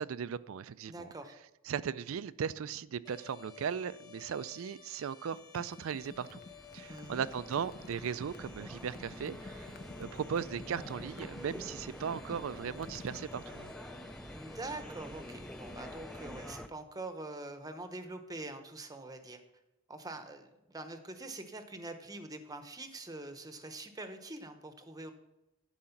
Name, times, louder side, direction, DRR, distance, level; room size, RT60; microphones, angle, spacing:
voice 1, 0.0-1.1 1.7-6.4 6.7-9.7 10.0-13.7, right 7 dB, 75° right, 0.4 m, -37 dB
voice 2, 0.9-1.4 6.9-7.3 14.3-19.4 19.9-25.1, right 2 dB, 20° right, 0.8 m, -44 dB
sound 1, 3.0-16.6, left 8 dB, 20° left, 1.2 m, -55 dB
sound 2, 5.3-13.5, left 2 dB, 45° left, 0.6 m, -51 dB
sound 3, 6.0-16.7, equal, 5° left, 0.4 m, -47 dB
11.5 x 4.9 x 5.8 m
head